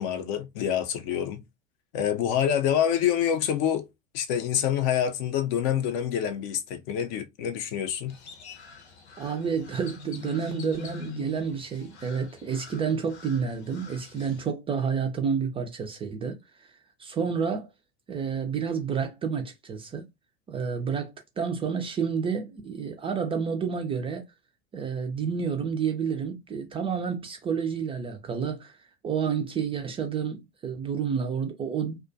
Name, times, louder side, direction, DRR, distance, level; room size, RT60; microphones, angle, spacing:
voice 1, 0.0-1.4 1.9-3.9 4.1-8.1, left 9 dB, 45° left, 0.5 m, -26 dB
Crow, 8.1-14.5, left 5 dB, 75° left, 0.8 m, -43 dB
voice 2, 9.2-16.7 17.0-17.7 18.1-20.1 20.5-24.3 24.7-28.8 29.0-32.0, right 6 dB, 15° right, 0.3 m, -30 dB
2.3 x 2.2 x 2.5 m
hypercardioid pair, 85°, 34 cm